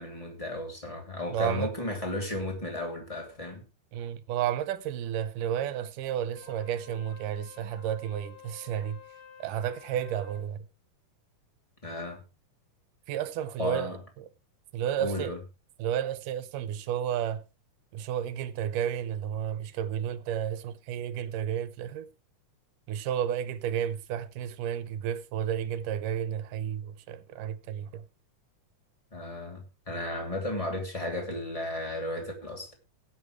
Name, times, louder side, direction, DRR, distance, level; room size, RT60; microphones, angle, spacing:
voice 1, 0.0-3.7 11.8-12.2 13.6-14.0 15.0-15.4 29.1-32.7, left 1 dB, 10° left, 2.5 m, -34 dB
voice 2, 1.3-1.7 3.9-9.0 9.4-10.7 13.1-13.9 14.2-14.3 14.7-15.4 15.8-17.4 17.9-22.1 22.9-28.1, right 10 dB, 80° right, 2.4 m, -32 dB
Wind instrument woodwind instrument, 6.2-10.5, left 7 dB, 50° left, 2.0 m, -51 dB
18.0 x 8.8 x 3.1 m
omnidirectional pair, 3.7 m